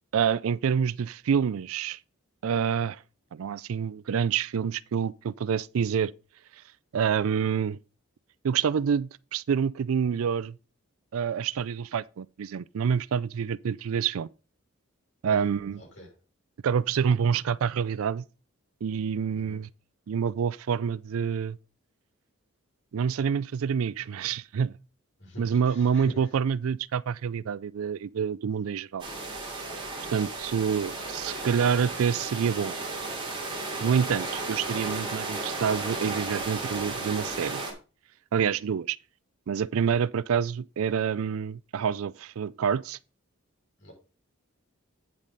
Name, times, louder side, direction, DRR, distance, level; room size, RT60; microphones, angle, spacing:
voice 1, 0.1-2.0 2.4-3.0 3.3-6.1 6.9-7.8 8.4-10.6 11.1-14.3 15.2-15.8 16.6-18.2 18.8-19.7 20.1-21.6 22.9-24.8 25.4-29.1 30.1-32.8 33.8-37.6 38.3-39.0 39.5-43.0, right 7 dB, 75° right, 0.4 m, -27 dB
voice 2, 15.8-16.1 19.3-19.6 25.2-26.2 43.8-43.9, equal, 55° left, 5.7 m, -44 dB
sound 1, 29.0-37.7, right 3 dB, 20° right, 2.8 m, -34 dB
9.2 x 7.3 x 4.0 m
head